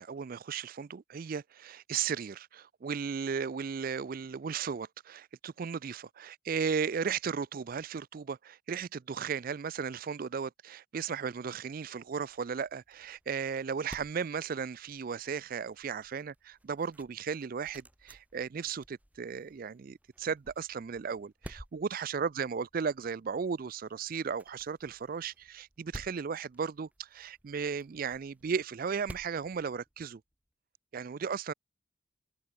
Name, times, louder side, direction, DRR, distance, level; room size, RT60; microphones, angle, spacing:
voice 1, 0.0-30.2 30.9-31.5, right 6 dB, 45° right, 0.4 m, -35 dB
sound 1, 11.9-30.3, equal, 5° right, 1.5 m, -54 dB
head